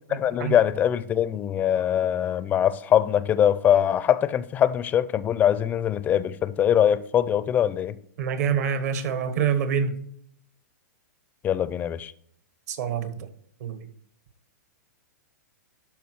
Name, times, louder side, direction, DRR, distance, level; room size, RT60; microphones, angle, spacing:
voice 1, 0.1-8.0 11.4-12.1, left 10 dB, 15° left, 0.4 m, -22 dB
voice 2, 8.2-9.9 12.7-13.3 13.6-13.8, right 7 dB, 60° right, 1.5 m, -26 dB
12.0 x 4.8 x 4.7 m
hypercardioid pair, 145°, 10 cm